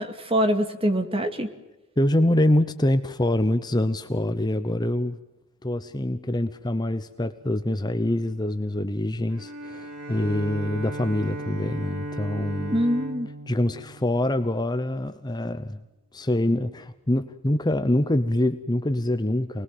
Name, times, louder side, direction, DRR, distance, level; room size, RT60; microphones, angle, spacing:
voice 1, 0.0-1.5 12.7-13.3, equal, 25° right, 8 dB, 2.4 m, -24 dB
voice 2, 2.0-5.2 5.6-12.8 13.5-15.8 16.1-19.6, left 1 dB, 20° left, 10 dB, 0.9 m, -25 dB
Bowed string instrument, 9.3-14.8, right 1 dB, 85° right, 4.1 m, -36 dB
28.0 x 20.5 x 7.6 m, 0.99 s
head